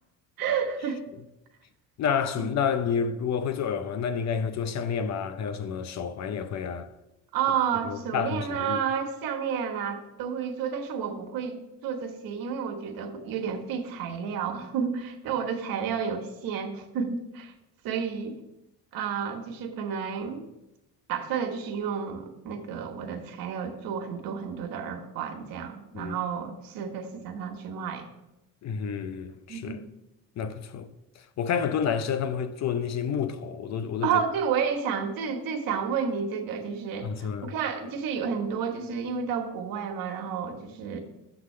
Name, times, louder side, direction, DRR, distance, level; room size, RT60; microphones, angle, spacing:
voice 1, 0.4-1.0 2.4-2.5 7.3-17.5 17.8-18.4 18.9-20.5 21.1-28.0 29.5-29.8 34.0-41.0, right 7 dB, 75° right, 1.2 m, -31 dB
voice 2, 2.0-6.9 7.8-8.8 25.9-26.2 28.6-29.8 30.4-30.9 31.4-34.2 37.0-37.5, left 7 dB, 50° left, 0.6 m, -29 dB
7.0 x 3.9 x 6.5 m
cardioid pair, 110°, 35 cm